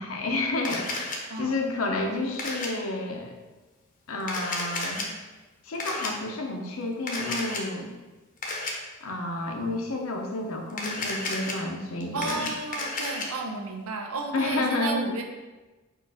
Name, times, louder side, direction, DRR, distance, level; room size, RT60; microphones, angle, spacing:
voice 1, 0.0-3.4 4.1-5.1 5.7-7.9 9.0-12.5 14.3-15.1, left 2 dB, 70° left, 3 dB, 0.7 m, -30 dB
Camera, 0.6-1.2 2.4-2.7 4.2-5.0 5.8-6.1 7.1-7.6 8.4-8.7 10.7-11.5 12.0-13.3, left 2 dB, 40° left, 0.7 m, -32 dB
voice 2, 12.1-15.2, right 3 dB, 85° right, 3 dB, 0.6 m, -33 dB
4.5 x 2.5 x 4.7 m, 1.2 s
head